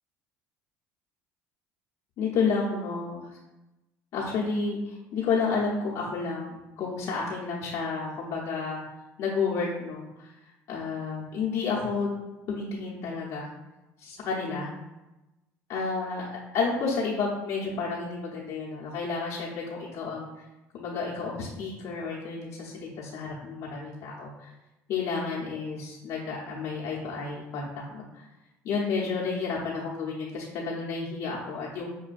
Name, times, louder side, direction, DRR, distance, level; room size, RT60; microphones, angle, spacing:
voice 1, 2.2-3.3 4.1-8.8 9.2-10.3 10.7-12.1 12.5-13.5 14.0-14.7 15.7-16.3 16.5-20.4 20.7-24.5 24.9-28.2 28.6-31.9, left 4 dB, 60° left, -6 dB, 0.8 m, -31 dB
6.1 x 2.2 x 2.5 m, 1.0 s
supercardioid pair, 95°, 6 cm